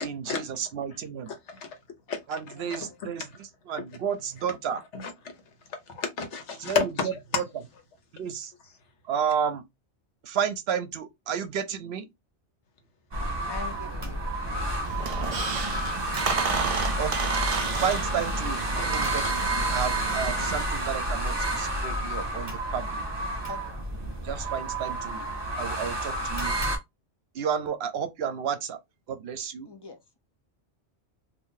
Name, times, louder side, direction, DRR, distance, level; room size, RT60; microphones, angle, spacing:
voice 1, 0.0-1.3 2.3-3.2 3.7-4.8 6.6-6.8 7.0-7.4 8.1-8.5 9.1-9.6 10.2-12.1 17.0-17.3 17.8-19.2 19.5-23.0 24.2-25.2 25.6-26.5 27.3-28.8 29.1-29.7, right 7 dB, 70° right, 0.8 m, -31 dB
voice 2, 1.3-1.8 2.1-2.8 4.9-5.1 5.7-7.4, left 5 dB, 90° left, 1.1 m, -31 dB
voice 3, 2.6-3.0 8.6-8.7 13.5-14.2 23.5-23.6 29.7-30.0, left 5 dB, 35° left, 0.4 m, -42 dB
sound 1, 13.1-26.8, right 1 dB, 25° right, 0.8 m, -30 dB
Squeak, 14.8-20.6, right 5 dB, 55° right, 0.4 m, -32 dB
2.6 x 2.5 x 3.7 m
omnidirectional pair, 1.1 m